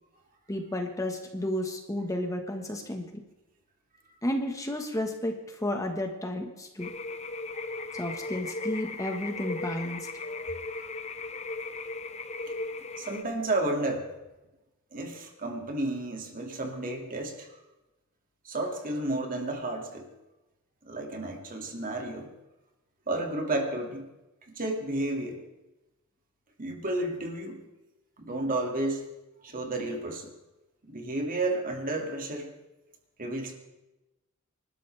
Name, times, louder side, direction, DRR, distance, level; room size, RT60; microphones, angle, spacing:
voice 1, 0.5-3.2 4.2-6.9 7.9-10.1, left 1 dB, 15° left, 3 dB, 1.5 m, -32 dB
sound 1, 6.8-13.2, left 3 dB, 30° left, 0.8 m, -37 dB
voice 2, 13.0-14.1 14.9-17.5 18.4-20.1 20.8-22.3 23.1-24.1 24.5-25.4 26.6-27.6 28.2-29.1 29.4-30.3 30.8-32.5 33.2-33.5, right 2 dB, 40° right, 2 dB, 2.4 m, -32 dB
27.5 x 12.5 x 3.5 m, 1.0 s
head